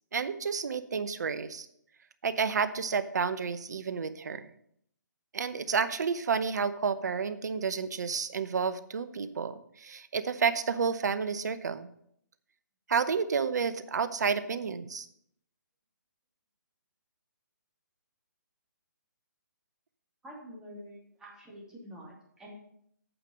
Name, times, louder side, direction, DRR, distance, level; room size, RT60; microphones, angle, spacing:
voice 1, 0.1-1.7 2.2-4.5 5.3-11.9 12.9-15.1, right 6 dB, 60° right, 13 dB, 0.8 m, -30 dB
voice 2, 20.2-22.5, equal, 5° right, -5 dB, 2.8 m, -47 dB
8.8 x 6.7 x 5.4 m, 0.70 s
figure-of-eight pair, 145°, 10 cm